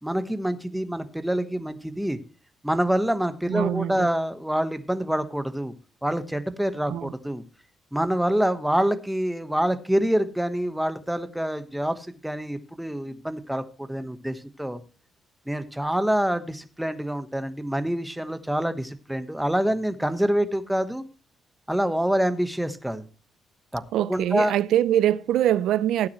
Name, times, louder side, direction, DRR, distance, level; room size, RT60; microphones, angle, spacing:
voice 1, 0.0-2.2 2.6-5.7 6.0-7.4 7.9-14.8 15.5-21.0 21.7-23.0 23.7-23.8 24.1-24.5, right 1 dB, 5° right, 1.3 m, -26 dB
voice 2, 3.5-4.1 6.9-7.1 23.9-26.1, right 12 dB, 90° right, 0.5 m, -23 dB
16.0 x 9.5 x 3.1 m
cardioid pair, 130°, 0 cm